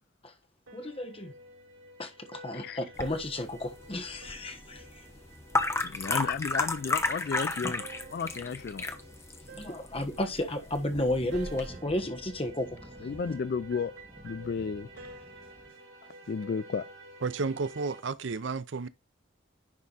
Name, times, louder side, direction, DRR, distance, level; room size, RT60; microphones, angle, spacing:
voice 1, 0.7-1.3 2.0-5.0 6.1-6.2 7.6-7.7 9.5-12.8, left 1 dB, 30° left, 1.3 m, -33 dB
sound 1, 0.7-18.0, right 2 dB, 85° right, 3.9 m, -50 dB
sound 2, 3.0-11.7, left 2 dB, 15° left, 0.8 m, -34 dB
voice 2, 5.8-8.9 13.0-14.0 14.2-14.9 16.3-16.9, left 5 dB, 50° left, 0.3 m, -33 dB
sound 3, 10.3-15.7, equal, 5° right, 1.7 m, -51 dB
voice 3, 17.2-18.9, right 4 dB, 65° right, 0.5 m, -32 dB
10.5 x 3.6 x 4.1 m
head